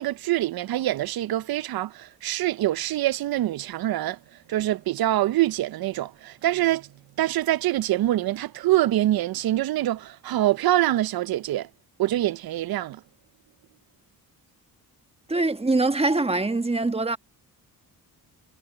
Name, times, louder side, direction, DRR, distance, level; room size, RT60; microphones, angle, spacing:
voice 1, 0.0-4.2 4.5-6.9 7.2-11.7 12.0-13.0, right 14 dB, 70° right, 0.6 m, -25 dB
voice 2, 15.3-17.2, right 2 dB, 15° right, 1.3 m, -23 dB
cardioid pair, 75°, 38 cm